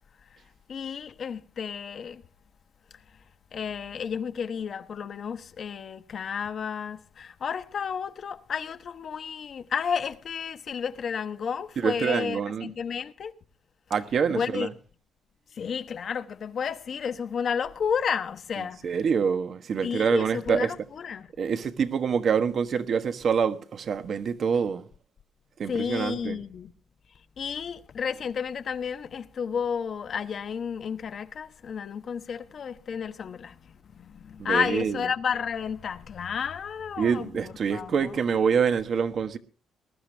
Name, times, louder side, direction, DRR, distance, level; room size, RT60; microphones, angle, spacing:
voice 1, 0.7-2.2 3.5-13.3 14.3-14.7 15.5-19.0 19.8-21.3 25.7-26.7 27.4-38.2, left 7 dB, 55° left, 1.1 m, -32 dB
voice 2, 11.8-12.7 13.9-14.7 18.8-20.7 21.4-24.8 25.6-26.4 34.4-35.0 37.0-39.4, right 6 dB, 55° right, 1.3 m, -26 dB
21.0 x 12.0 x 3.4 m
cardioid pair, 90°, 0 cm